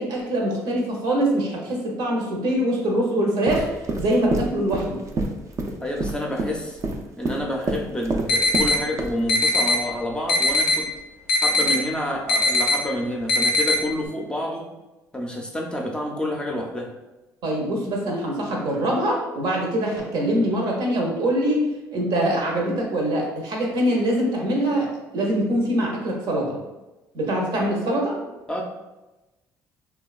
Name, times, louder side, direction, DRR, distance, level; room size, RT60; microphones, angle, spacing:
voice 1, 0.0-3.7 4.0-5.0 17.4-26.6 27.1-28.2, right 1 dB, 65° right, -1 dB, 0.7 m, -23 dB
sound 1, 3.5-8.7 9.0-9.1, right 2 dB, 40° right, 0.4 m, -27 dB
voice 2, 5.8-6.8 7.2-10.9 11.4-14.7 15.1-16.9 28.5-28.6, left 1 dB, 10° left, 0 dB, 0.5 m, -28 dB
sound 2, 8.3-8.8 9.3-9.8 10.3-10.8 11.3-11.8 12.3-12.8 13.3-13.8, left 2 dB, 90° left, 0.4 m, -19 dB
2.9 x 2.2 x 2.3 m, 1.0 s
supercardioid pair, 75°, 8 cm